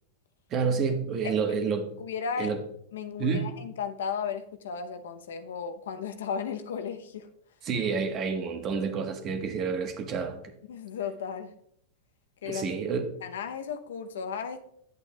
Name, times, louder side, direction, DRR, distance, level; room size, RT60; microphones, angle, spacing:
voice 1, 0.5-1.9 2.4-2.6 3.2-3.5 7.6-10.4 12.4-13.0, right 5 dB, 35° right, 1.3 m, -29 dB
voice 2, 2.0-2.5 2.9-7.3 10.7-11.5 12.4-12.7 13.2-14.6, left 6 dB, 90° left, 0.8 m, -35 dB
9.3 x 8.2 x 2.3 m
supercardioid pair, 130°, 0 cm